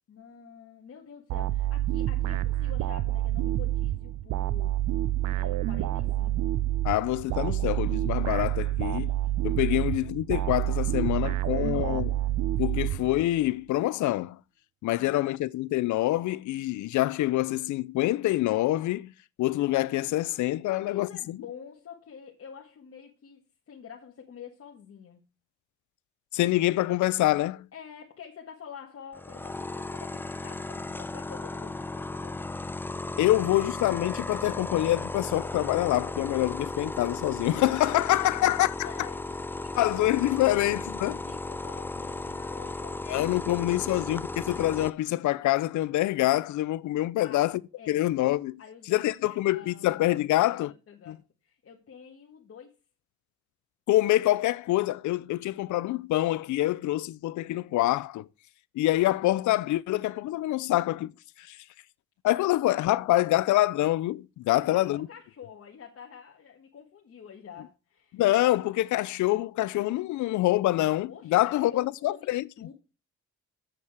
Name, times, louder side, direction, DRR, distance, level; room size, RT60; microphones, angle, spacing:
voice 1, 0.1-4.8 5.3-6.5 9.6-9.8 11.6-12.0 14.9-15.4 20.7-25.2 27.7-32.6 33.2-33.4 38.1-40.1 40.4-43.9 47.2-47.5 47.8-48.1 48.6-50.3 50.9-52.7 54.1-54.2 62.7-63.0 64.5-68.2 71.1-72.7, left 7 dB, 50° left, 1.6 m, -48 dB
sound 1, 1.3-13.5, right 13 dB, 75° right, 0.7 m, -28 dB
voice 2, 6.8-9.2 9.4-12.1 12.6-14.4 14.8-19.1 19.4-21.4 26.3-27.7 33.2-38.7 39.7-41.2 43.1-47.6 47.9-48.6 48.9-50.7 51.1-51.2 53.9-58.3 58.7-61.1 61.4-61.6 62.2-65.1 68.1-72.4, left 16 dB, 75° left, 0.5 m, -26 dB
sound 2, 29.1-44.9, left 2 dB, 5° left, 0.3 m, -35 dB
7.4 x 7.1 x 4.7 m
cardioid pair, 90°, 30 cm